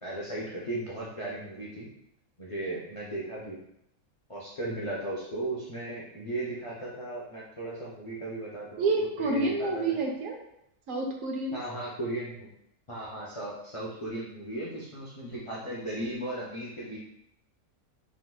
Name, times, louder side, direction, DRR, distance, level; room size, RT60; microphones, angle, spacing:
voice 1, 0.0-1.9 2.4-3.5 4.3-10.0 11.5-12.5 12.9-17.0, right 1 dB, 55° left, -7 dB, 0.3 m, -36 dB
voice 2, 8.8-10.4 10.9-11.5, right 3 dB, 70° right, 1 dB, 0.9 m, -28 dB
3.5 x 2.8 x 2.2 m, 0.77 s
omnidirectional pair, 1.5 m